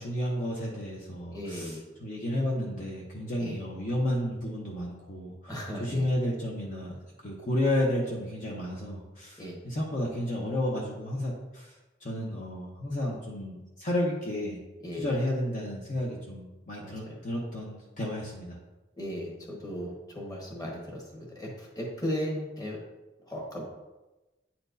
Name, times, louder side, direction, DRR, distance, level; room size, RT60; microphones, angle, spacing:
voice 1, 0.0-5.5 5.8-7.0 7.2-11.7 12.0-14.6 14.9-18.6, left 1 dB, 45° left, -3 dB, 0.9 m, -32 dB
voice 2, 1.3-1.8 3.4-3.6 5.5-6.1 9.4-9.6 14.8-15.2 16.8-17.1 19.0-22.8 23.3-23.7, equal, 20° left, -2 dB, 1.4 m, -36 dB
9.1 x 4.3 x 2.6 m, 1.1 s
head